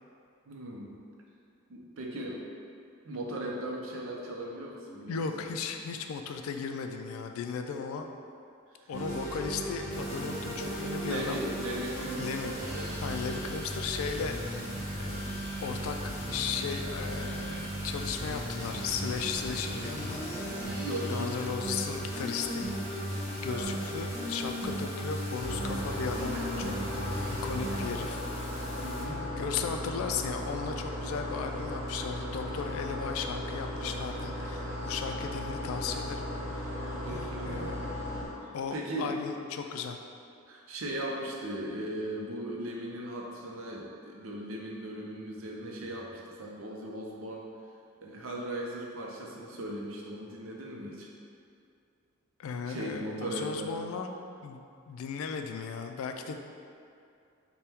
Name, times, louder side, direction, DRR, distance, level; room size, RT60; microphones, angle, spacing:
voice 1, 0.5-0.9 1.7-2.4 3.0-5.5 8.8-8.9 11.0-13.4 20.8-21.6 23.5-23.7 28.8-29.2 36.9-37.8 38.4-39.2 40.5-47.5 48.0-51.1 52.7-53.7, right 1 dB, 70° right, -1 dB, 0.6 m, -38 dB
voice 2, 5.1-8.1 8.9-11.4 12.2-12.6 13.0-14.4 15.0-15.3 15.6-20.2 21.1-23.1 23.4-27.1 27.4-28.2 29.4-36.3 36.5-36.7 37.1-38.0 38.5-40.0 52.4-54.2 54.4-56.4, left 6 dB, 80° left, 7 dB, 0.3 m, -36 dB
sound 1, 8.9-27.9, equal, 10° right, 1.0 m, -36 dB
sound 2, 9.9-29.1, left 1 dB, 30° left, 0.5 m, -45 dB
sound 3, 25.4-38.3, left 1 dB, 45° right, 0.9 m, -36 dB
4.2 x 2.2 x 3.4 m, 2.5 s
head